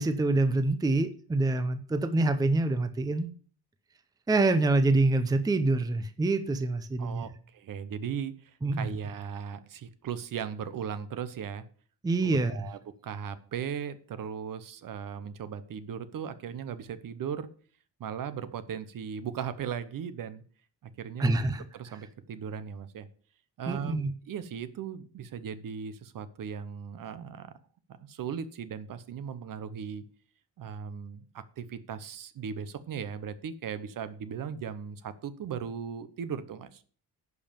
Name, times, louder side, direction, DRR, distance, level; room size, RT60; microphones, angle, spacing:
voice 1, 0.0-3.3 4.3-7.3 8.6-8.9 12.0-12.5 21.2-21.7 23.7-24.1, right 2 dB, 10° right, 10 dB, 0.6 m, -26 dB
voice 2, 7.0-11.6 12.2-17.5 18.0-20.4 20.8-21.4 21.7-23.1 23.6-27.5 28.0-30.0 30.6-36.8, right 7 dB, 55° right, 13 dB, 1.0 m, -37 dB
11.0 x 5.4 x 6.9 m, 0.44 s
cardioid pair, 155°, 40 cm